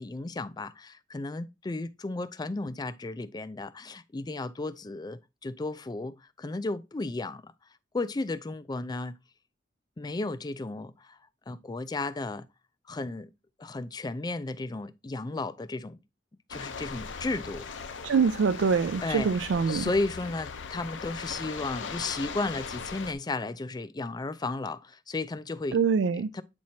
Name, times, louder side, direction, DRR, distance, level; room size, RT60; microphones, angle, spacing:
voice 1, 0.0-7.5 7.9-9.2 10.0-11.2 11.5-12.5 12.9-13.3 13.6-16.0 16.5-17.6 19.0-25.8 26.2-26.4, left 2 dB, 20° left, 0.4 m, -34 dB
sound 1, 16.5-23.1, left 5 dB, 85° left, 0.7 m, -39 dB
voice 2, 18.0-19.9 25.7-26.3, right 5 dB, 75° right, 0.4 m, -24 dB
8.4 x 4.4 x 2.8 m
head